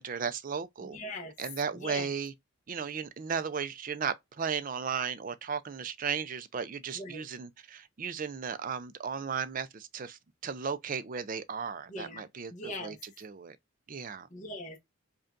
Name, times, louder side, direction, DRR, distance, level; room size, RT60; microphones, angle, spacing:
voice 1, 0.0-1.0 1.4-2.3 2.7-13.6 13.9-14.3, right 6 dB, 40° right, 0.4 m, -35 dB
voice 2, 0.8-1.3 1.7-2.1 6.9-7.2 11.9-12.2 12.5-13.0 14.3-14.8, left 1 dB, 35° left, 0.9 m, -40 dB
5.2 x 2.3 x 2.5 m
head